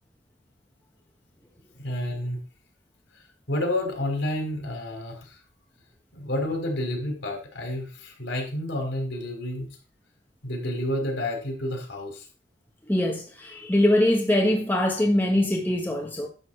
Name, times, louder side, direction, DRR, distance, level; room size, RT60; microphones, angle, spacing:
voice 1, 1.8-2.4 3.1-3.2 3.5-5.4 6.1-9.7 10.4-12.3, left 1 dB, 80° left, 3.9 m, -30 dB
voice 2, 12.9-16.3, left 1 dB, 10° left, 1.4 m, -23 dB
11.0 x 4.1 x 6.8 m
head